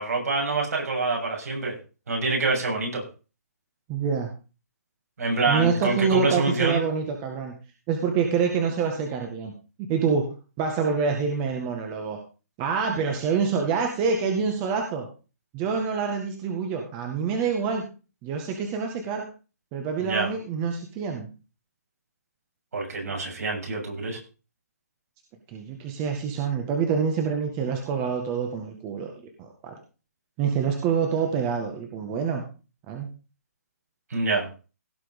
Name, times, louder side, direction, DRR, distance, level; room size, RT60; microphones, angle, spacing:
voice 1, 0.0-1.7 2.1-3.0 5.2-6.8 20.0-20.3 22.7-24.2 34.1-34.5, right 3 dB, 70° right, 0 dB, 7.9 m, -26 dB
voice 2, 3.9-4.3 5.5-7.5 7.9-9.5 9.9-12.2 12.6-15.1 15.5-17.8 18.2-19.2 19.7-21.3 25.5-29.1 29.4-29.8 30.4-32.4 32.9-33.1, right 6 dB, 25° right, 3 dB, 1.9 m, -26 dB
17.5 x 6.1 x 5.4 m, 0.34 s
hypercardioid pair, 155°, 9 cm